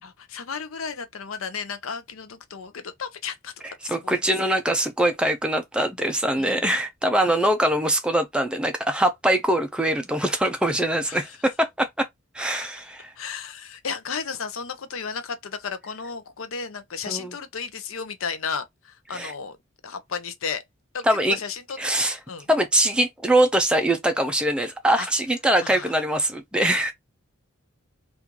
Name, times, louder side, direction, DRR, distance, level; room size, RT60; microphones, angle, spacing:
voice 1, 0.0-3.5 3.8-4.2 6.4-6.7 11.1-11.4 13.1-19.6 19.8-20.6 20.9-21.8 22.3-22.5 25.0-25.1 25.6-26.0, left 6 dB, 75° left, 0.6 m, -34 dB
voice 2, 3.9-12.1 12.3-13.1 17.1-17.3 19.1-19.3 21.0-21.4 21.8-22.2 22.5-26.9, right 1 dB, 5° right, 0.4 m, -23 dB
3.0 x 2.5 x 3.6 m
head